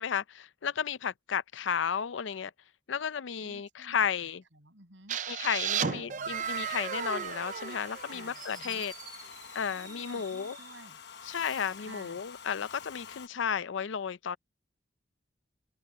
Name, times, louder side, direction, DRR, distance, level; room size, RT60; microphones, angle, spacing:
voice 1, 0.0-2.5 2.9-4.4 5.3-8.9 9.5-10.6 11.2-14.4, left 7 dB, 90° left, 0.5 m, -33 dB
voice 2, 3.4-5.2 5.5-6.4 8.1-8.9 9.7-11.0 11.8-12.2, right 2 dB, 80° right, 6.4 m, -54 dB
sound 1, 5.1-8.8, right 7 dB, 40° right, 0.4 m, -34 dB
Domestic sounds home sounds, 6.4-13.3, left 7 dB, 65° left, 0.9 m, -48 dB
Fireworks, 8.3-10.8 11.1-12.0, right 5 dB, 20° right, 1.1 m, -49 dB
head